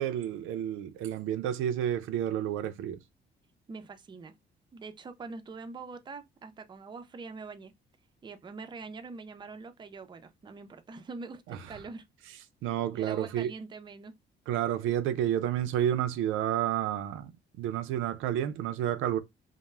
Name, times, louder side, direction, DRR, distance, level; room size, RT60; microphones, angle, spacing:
voice 1, 0.0-3.0 11.5-11.8 12.6-13.5 14.5-17.3 17.6-19.2, right 11 dB, 90° right, 0.4 m, -30 dB
voice 2, 3.7-4.4 4.7-7.7 8.2-12.1 12.9-14.1, right 4 dB, 25° right, 0.4 m, -44 dB
2.2 x 2.0 x 3.1 m
cardioid pair, 90°, 20 cm